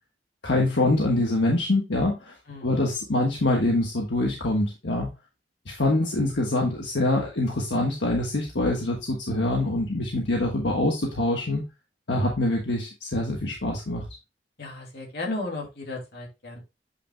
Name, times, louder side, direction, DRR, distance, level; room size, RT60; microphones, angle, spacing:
voice 1, 0.4-2.3 2.6-5.1 5.7-11.6 12.1-14.1, left 2 dB, 85° left, 0 dB, 1.4 m, -25 dB
voice 2, 14.6-16.6, left 2 dB, 65° left, -1 dB, 2.6 m, -34 dB
8.3 x 5.8 x 2.2 m, 0.26 s
head